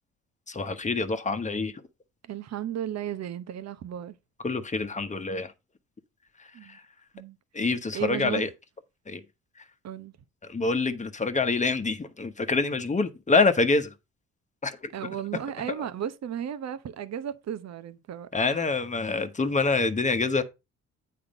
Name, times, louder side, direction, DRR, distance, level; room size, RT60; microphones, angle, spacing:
voice 1, 0.5-1.7 4.4-5.5 6.6-6.8 7.5-8.5 9.1-9.2 10.5-13.9 14.6-14.9 18.3-20.4, left 3 dB, 25° left, 1.1 m, -26 dB
voice 2, 2.3-4.2 6.5-6.8 7.1-7.4 7.9-8.5 9.8-10.1 14.9-18.6, right 9 dB, 60° right, 0.9 m, -34 dB
8.7 x 4.4 x 5.2 m
cardioid pair, 90°, 30 cm